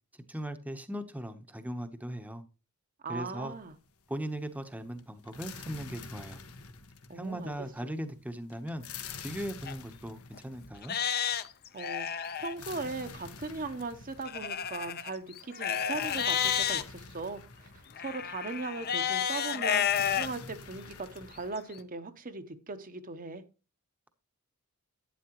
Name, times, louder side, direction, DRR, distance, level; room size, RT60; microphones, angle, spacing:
voice 1, 0.3-2.4 3.1-3.5 4.1-6.4 7.1-8.8 9.2-11.0, right 1 dB, 5° right, 0.8 m, -38 dB
voice 2, 3.0-3.7 7.1-7.5 11.7-17.7 18.0-23.4, right 3 dB, 40° right, 0.8 m, -39 dB
sound 1, 3.4-4.1 4.3-21.5, left 5 dB, 85° left, 1.4 m, -47 dB
Livestock farm animals working animals, 9.7-9.8 10.3-10.4 10.8-12.5 14.3-16.8 18.0-20.3 20.9-21.0 21.6-21.7, left 8 dB, 45° left, 0.7 m, -31 dB
11.5 x 9.6 x 3.0 m
head